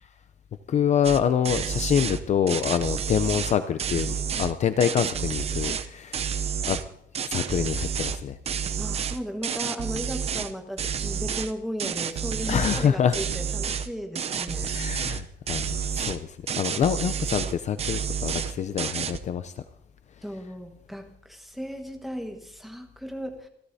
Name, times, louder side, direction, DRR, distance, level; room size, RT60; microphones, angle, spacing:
voice 1, 0.7-6.3 6.7-6.8 7.3-8.4 12.5-13.2 14.6-19.5, left 8 dB, 40° left, 11 dB, 0.5 m, -26 dB
sound 1, 1.0-1.2 1.4-2.2 2.5-4.5 4.8-5.9 6.1-6.8 7.1-8.2 8.5-10.5 10.8-11.5 11.8-12.9 13.1-13.9 14.2-15.2 15.5-16.2 16.5-17.5 17.8-18.5 18.8-19.2, right 7 dB, 35° right, 0.6 m, -29 dB
voice 2, 8.8-14.8 20.2-23.5, equal, ahead, 3 dB, 1.4 m, -36 dB
27.0 x 13.0 x 2.7 m, 0.71 s
cardioid pair, 175°, 18 cm